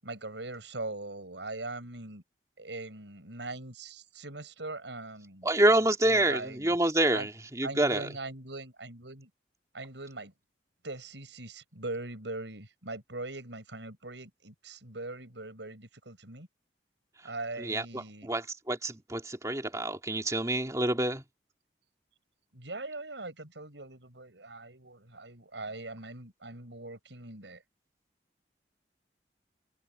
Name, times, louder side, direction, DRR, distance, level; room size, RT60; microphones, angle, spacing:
voice 1, 0.0-2.2 2.6-5.5 5.8-6.8 7.1-7.3 7.6-9.3 9.7-10.3 10.8-16.5 17.2-18.3 22.5-27.6, right 2 dB, 85° right, 6.6 m, -41 dB
voice 2, 5.4-8.1 17.6-21.2, right 1 dB, 20° right, 2.7 m, -27 dB
open air
head